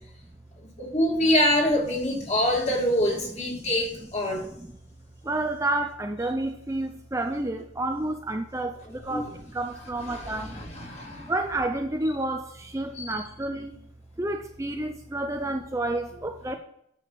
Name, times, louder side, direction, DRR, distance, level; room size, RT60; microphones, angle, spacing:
voice 1, 0.8-4.5 9.1-9.2 10.1-11.3 12.9-13.1, left 1 dB, 35° left, -1 dB, 2.7 m, -25 dB
voice 2, 3.2-3.7 4.3-4.7 5.2-13.8 14.2-16.5, right 2 dB, 15° right, 5 dB, 0.5 m, -30 dB
9.3 x 7.1 x 5.8 m, 0.72 s
head